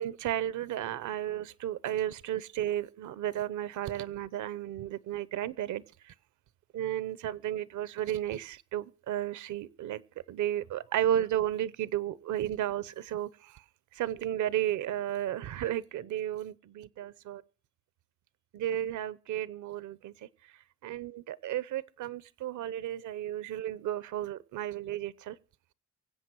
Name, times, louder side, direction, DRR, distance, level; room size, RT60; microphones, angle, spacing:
voice 1, 0.0-6.1 6.7-10.0 10.3-13.6 13.9-17.4 18.5-20.3 20.8-25.4, right 11 dB, 75° right, 0.8 m, -33 dB
24.0 x 8.1 x 4.6 m
cardioid pair, 90°, 30 cm